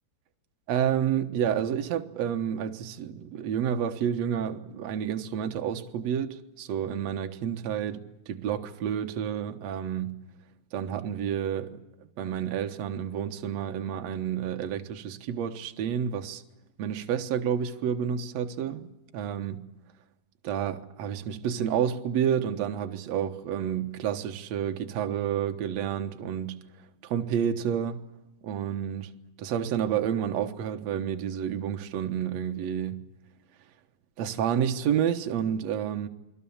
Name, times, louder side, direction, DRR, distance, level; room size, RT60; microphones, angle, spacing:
voice 1, 0.7-8.0 8.3-10.1 10.7-11.8 12.2-16.4 16.8-19.6 20.4-26.5 27.0-28.0 28.4-29.1 29.4-33.0 34.2-36.1, right 9 dB, 70° right, 1.6 m, -29 dB
29.0 x 22.5 x 7.2 m
omnidirectional pair, 5.0 m